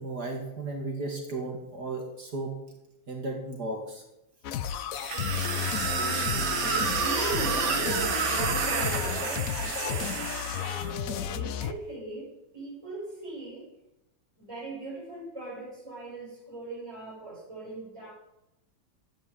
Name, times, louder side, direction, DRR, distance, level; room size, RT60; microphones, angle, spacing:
voice 1, 0.0-2.5 3.1-4.0, right 2 dB, 55° right, 1 dB, 2.9 m, -34 dB
sound 1, 4.4-11.7, left 9 dB, 60° left, 0.9 m, -33 dB
sound 2, 4.9-10.9, right 6 dB, 80° right, 2.3 m, -30 dB
voice 2, 5.1-13.7 14.4-18.1, right 2 dB, 15° right, -8 dB, 6.4 m, -39 dB
13.0 x 9.4 x 9.6 m, 0.90 s
omnidirectional pair, 2.1 m